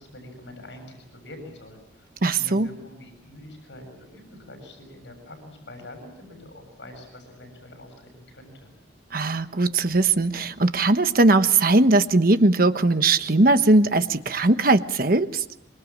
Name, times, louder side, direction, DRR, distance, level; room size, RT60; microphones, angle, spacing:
voice 1, 0.0-8.7, left 1 dB, 80° left, 5 dB, 7.4 m, -45 dB
voice 2, 2.2-2.7 9.1-15.4, right 2 dB, 55° right, 10 dB, 1.2 m, -19 dB
25.5 x 24.5 x 7.5 m, 0.79 s
head